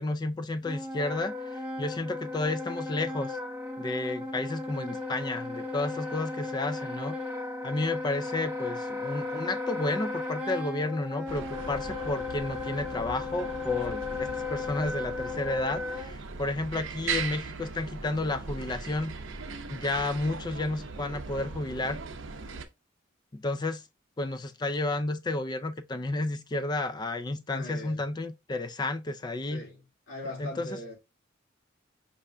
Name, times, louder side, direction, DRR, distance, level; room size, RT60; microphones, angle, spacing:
voice 1, 0.0-3.4 3.8-7.2 7.6-19.1 19.7-22.0 23.3-23.8 24.2-29.6 30.4-30.8, left 2 dB, 20° left, 0.4 m, -32 dB
Wind instrument woodwind instrument, 0.6-16.1, left 3 dB, 10° right, 1.1 m, -36 dB
sound 1, 11.3-22.7, right 4 dB, 70° right, 0.6 m, -39 dB
voice 2, 27.5-28.0 29.5-29.8 30.1-30.9, left 1 dB, 85° left, 2.5 m, -40 dB
5.3 x 2.5 x 3.3 m
head